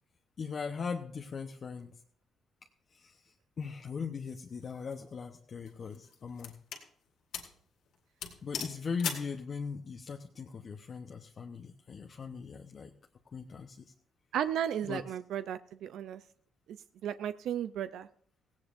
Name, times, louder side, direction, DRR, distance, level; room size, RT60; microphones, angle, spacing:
voice 1, 0.4-2.0 2.9-6.6 8.4-12.9 13.3-13.9 14.9-15.0, left 5 dB, 50° left, 2 dB, 0.9 m, -39 dB
sound 1, 4.6-4.9 5.7-6.9 7.3-7.6 7.9-8.0 8.2-9.3, left 7 dB, 80° left, 2.1 m, -39 dB
voice 2, 14.3-16.2 16.7-16.8 17.0-18.1, right 9 dB, 75° right, 12 dB, 0.4 m, -34 dB
17.0 x 16.5 x 2.6 m, 0.62 s
cardioid pair, 90°, 0 cm